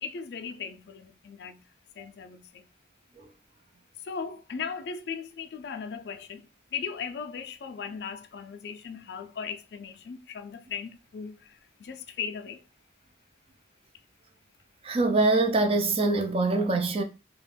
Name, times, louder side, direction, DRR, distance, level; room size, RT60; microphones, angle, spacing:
voice 1, 0.0-1.6 2.0-2.6 4.0-6.5 6.7-12.6, left 6 dB, 60° left, 0.3 m, -38 dB
voice 2, 14.8-17.0, right 2 dB, 30° right, 0.3 m, -24 dB
2.3 x 2.1 x 3.2 m
head